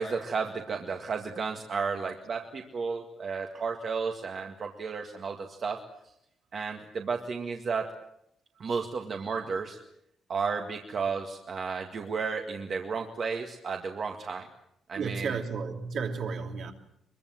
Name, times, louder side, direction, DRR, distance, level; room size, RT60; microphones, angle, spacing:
voice 1, 0.0-5.8 6.5-7.9 8.6-9.8 10.3-14.5 14.9-15.4, right 5 dB, 40° right, 2.0 m, -33 dB
voice 2, 15.0-16.7, right 5 dB, 55° right, 3.1 m, -33 dB
24.5 x 23.0 x 7.8 m
cardioid pair, 160°, 0 cm